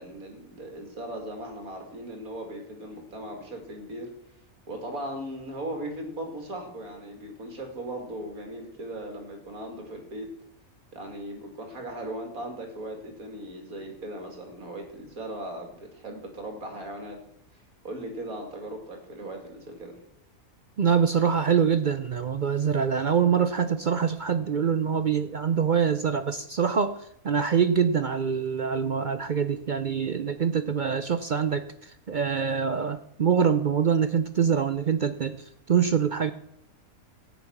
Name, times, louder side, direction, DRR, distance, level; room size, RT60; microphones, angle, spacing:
voice 1, 0.0-4.1 4.7-10.3 10.9-17.2 17.8-20.0, right 1 dB, 75° right, 3 dB, 3.1 m, -38 dB
voice 2, 20.8-27.0 27.2-36.3, right 7 dB, 60° right, 11 dB, 0.5 m, -25 dB
14.0 x 9.3 x 5.9 m, 0.76 s
omnidirectional pair, 1.5 m